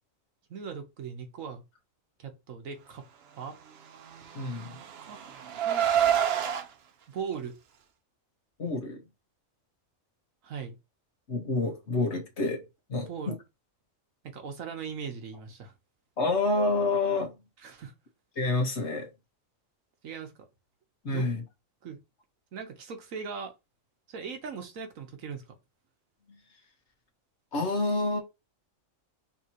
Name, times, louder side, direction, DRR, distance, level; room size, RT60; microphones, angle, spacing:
voice 1, 0.5-1.6 2.2-3.0 3.4-3.6 5.0-5.2 5.6-5.9 7.1-7.5 10.4-10.8 13.1-13.3 14.2-15.7 17.6-17.9 20.0-20.3 21.1-21.3 21.8-22.0 22.5-23.5 24.1-25.4, right 6 dB, 75° right, 1.4 m, -39 dB
Car, 4.1-6.6, right 9 dB, 60° right, 0.8 m, -27 dB
voice 2, 4.3-4.8 8.6-9.1 11.3-12.6 12.9-13.3 16.2-17.4 18.3-19.1 21.0-21.4 26.3-26.4 27.5-28.2, left 2 dB, 55° left, 1.5 m, -28 dB
5.7 x 2.9 x 2.9 m
omnidirectional pair, 1.4 m